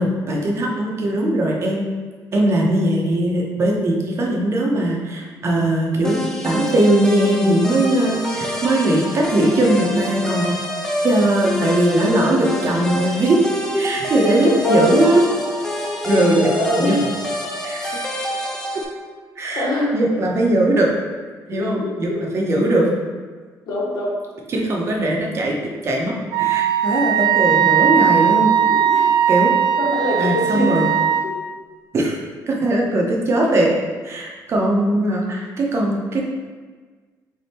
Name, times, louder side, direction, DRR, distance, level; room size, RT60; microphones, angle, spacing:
voice 1, 0.0-1.8 2.3-6.2 6.4-10.6 11.0-13.4 13.8-15.2 16.0-16.5 16.8-17.0 17.6-18.0 19.4-19.7 19.9-20.9 21.5-22.9 24.5-25.6 25.8-28.5 28.9-29.5 30.2-30.9 31.9-32.2 32.5-33.7 34.0-36.2, right 1 dB, 40° right, -2 dB, 0.8 m, -19 dB
sound 1, 6.0-18.8, left 1 dB, 5° left, 0.6 m, -26 dB
voice 2, 14.2-15.1 16.0-17.0 19.5-19.9 21.5-22.2 23.7-24.1 28.5-28.9 29.8-30.8 31.2-31.3, left 1 dB, 65° left, -4 dB, 1.3 m, -23 dB
Wind instrument woodwind instrument, 26.3-31.3, right 9 dB, 80° right, 0.4 m, -18 dB
3.6 x 3.5 x 4.2 m, 1.4 s
cardioid pair, 145°, 7 cm